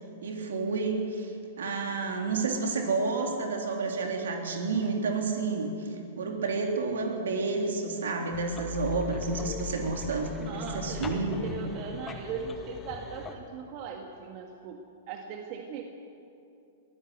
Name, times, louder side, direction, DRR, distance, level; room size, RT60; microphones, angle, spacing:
voice 1, 0.2-5.9 6.2-11.6, right 3 dB, 70° right, 2 dB, 3.3 m, -30 dB
sound 1, 8.3-13.4, left 5 dB, 20° left, 1.8 m, -40 dB
voice 2, 10.4-15.8, right 6 dB, 45° right, 3 dB, 1.7 m, -39 dB
22.5 x 15.0 x 8.2 m, 2.7 s
hypercardioid pair, 105°, 0 cm